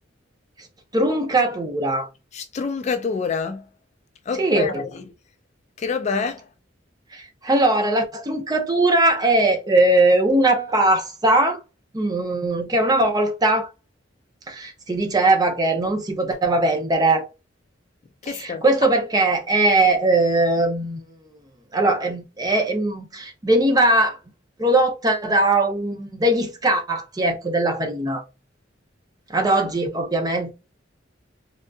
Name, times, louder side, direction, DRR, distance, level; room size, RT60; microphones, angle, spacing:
voice 1, 0.9-2.1 4.4-4.8 7.1-11.6 11.9-13.7 14.5-17.3 18.3-21.0 21.7-24.2 24.6-28.2 29.3-30.5, right 2 dB, 20° right, 0.6 m, -20 dB
voice 2, 2.3-3.7 4.3-5.0 5.8-6.5 18.2-18.6, left 5 dB, 35° left, 0.3 m, -27 dB
3.5 x 2.5 x 2.3 m
head